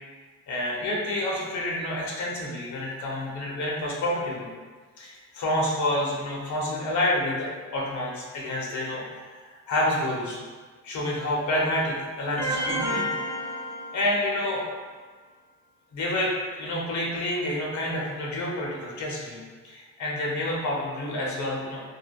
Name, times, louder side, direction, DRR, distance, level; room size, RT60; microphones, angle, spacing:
voice 1, 0.5-4.5 5.0-9.0 9.3-10.4 10.8-13.1 13.9-14.7 15.9-21.8, left 1 dB, 70° left, -3 dB, 0.7 m, -28 dB
sound 1, 12.4-14.5, equal, 20° right, 0.5 m, -30 dB
3.3 x 2.2 x 2.3 m, 1.5 s
cardioid pair, 90°, 30 cm